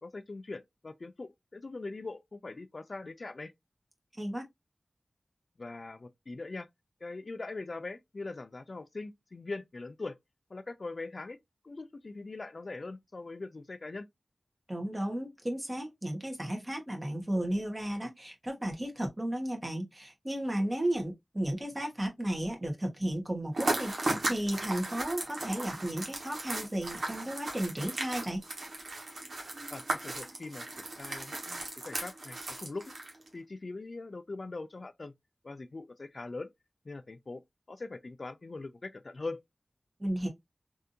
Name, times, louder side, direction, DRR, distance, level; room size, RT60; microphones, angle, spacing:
voice 1, 0.0-3.5 5.6-6.7 7.0-10.2 10.5-11.4 11.6-14.1 29.7-32.9 33.3-35.1 35.4-36.5 36.9-37.4 37.7-39.4, left 3 dB, 60° left, 0.3 m, -41 dB
voice 2, 14.7-28.4 40.0-40.3, right 1 dB, 25° right, 1.3 m, -34 dB
sound 1, 23.5-33.3, right 2 dB, 85° right, 1.1 m, -36 dB
3.5 x 2.6 x 2.5 m
wide cardioid pair, 55°, 0 cm